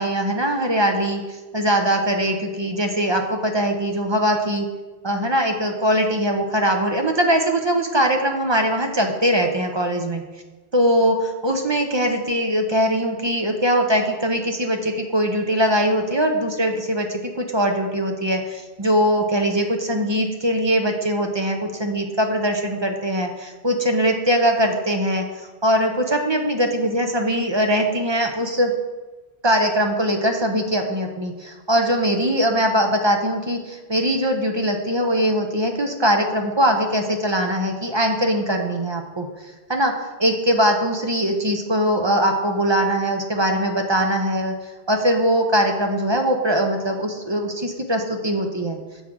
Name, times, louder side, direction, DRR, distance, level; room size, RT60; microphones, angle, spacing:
voice 1, 0.0-4.7 5.0-10.2 10.7-28.7 29.4-39.3 39.7-39.9 40.2-44.5 44.9-48.8, equal, 30° right, 3 dB, 0.5 m, -21 dB
7.2 x 3.7 x 6.0 m, 1.2 s
omnidirectional pair, 1.1 m